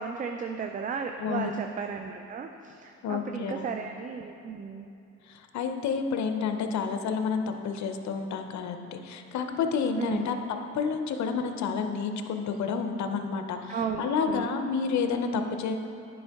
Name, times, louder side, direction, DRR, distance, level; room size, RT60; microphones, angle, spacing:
voice 1, 0.0-4.9 10.0-10.2 13.7-14.5, right 6 dB, 30° right, 5 dB, 0.3 m, -34 dB
voice 2, 1.2-1.5 3.0-3.7 5.3-10.4 10.7-15.8, left 5 dB, 65° left, 6 dB, 0.7 m, -30 dB
9.4 x 5.2 x 3.5 m, 2.7 s
cardioid pair, 90°, 30 cm